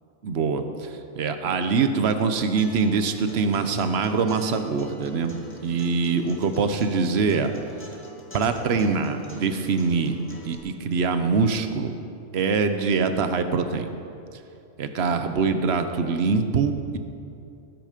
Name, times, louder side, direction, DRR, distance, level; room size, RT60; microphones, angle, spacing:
voice 1, 0.2-0.9 1.2-5.4 5.6-7.5 8.3-11.9 12.3-13.9 14.8-17.0, right 5 dB, 55° right, 8 dB, 1.1 m, -24 dB
Acoustic guitar, 2.6-10.6, left 1 dB, 10° left, 1.8 m, -44 dB
19.5 x 9.2 x 5.1 m, 2.7 s
omnidirectional pair, 1.4 m